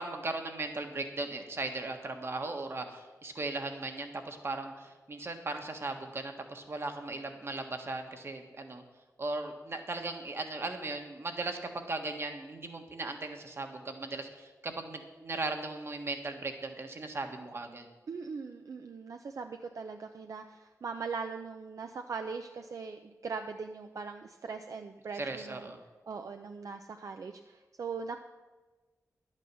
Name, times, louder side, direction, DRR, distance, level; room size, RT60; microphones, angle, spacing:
voice 1, 0.0-8.8 9.2-17.8 25.1-25.8, right 2 dB, 45° right, 5 dB, 1.4 m, -37 dB
voice 2, 18.1-25.7 26.1-28.2, right 5 dB, 70° right, 6 dB, 0.6 m, -40 dB
11.0 x 9.0 x 6.9 m, 1.2 s
wide cardioid pair, 120°, 6 cm